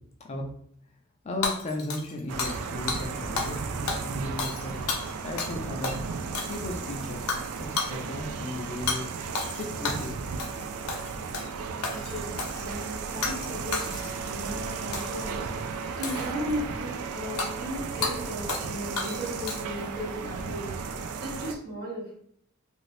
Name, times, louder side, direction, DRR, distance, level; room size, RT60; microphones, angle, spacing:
voice 1, 1.2-4.8 5.2-6.0 6.5-7.3 7.6-9.1 9.5-10.1 10.7-10.9, left 1 dB, 30° left, 1 dB, 0.4 m, -35 dB
Hammer / Shatter, 1.4-2.6 2.9-3.0 3.4-3.6 3.9-5.6 5.8-6.0 6.3-6.8 7.3-7.5 7.8-7.9 8.9-9.0 9.3-10.1 10.4-10.6 10.9-11.5 11.8-12.6 13.2-13.5 13.7-14.3 14.9-15.2 16.0-16.6 17.4-17.5 18.0-18.1 18.5-18.7 19.0-19.8, left 4 dB, 80° left, 0.6 m, -32 dB
sound 1, 2.3-21.6, right 5 dB, 80° right, 0.4 m, -35 dB
voice 2, 11.9-15.5 16.0-20.7 21.2-22.1, equal, 45° right, -3 dB, 1.2 m, -36 dB
2.7 x 2.6 x 3.1 m, 0.68 s
head